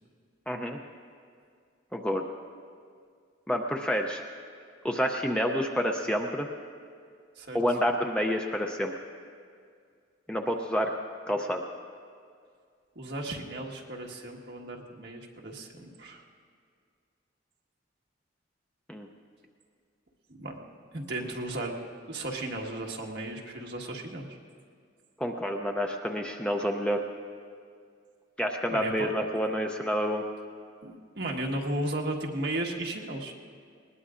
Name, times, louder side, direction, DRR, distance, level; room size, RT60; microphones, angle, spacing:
voice 1, 0.5-0.8 1.9-2.2 3.5-4.2 4.8-6.5 7.5-8.9 10.3-10.9 11.3-11.6 18.9-19.1 25.2-27.0 28.4-30.2, equal, 5° left, 2 dB, 0.5 m, -28 dB
voice 2, 12.9-16.2 20.4-20.6 20.9-21.7 22.1-24.4 28.7-29.1 30.8-33.3, right 1 dB, 55° right, -1 dB, 1.5 m, -35 dB
20.5 x 19.0 x 2.5 m, 2.2 s
head